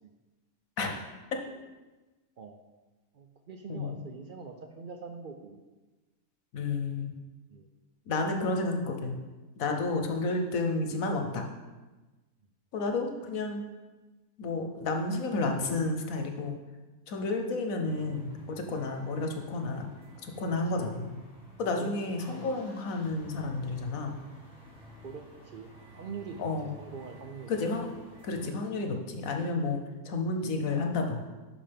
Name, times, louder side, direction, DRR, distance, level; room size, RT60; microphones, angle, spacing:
voice 1, 3.1-5.6 7.5-7.7 17.2-17.3 20.7-21.0 21.6-22.0 22.2-22.7 25.0-27.6 29.8-29.9, right 5 dB, 70° right, 5 dB, 0.5 m, -44 dB
voice 2, 6.5-7.1 8.1-9.2 9.6-11.5 12.7-13.6 14.4-16.6 17.1-19.9 20.2-21.2 21.6-24.1 26.4-26.7 27.5-27.9 28.2-31.2, left 3 dB, 70° left, 4 dB, 1.3 m, -31 dB
sound 1, 17.8-21.7 22.0-28.5, right 1 dB, 5° right, 2.0 m, -53 dB
11.0 x 4.9 x 3.5 m, 1.2 s
omnidirectional pair, 1.5 m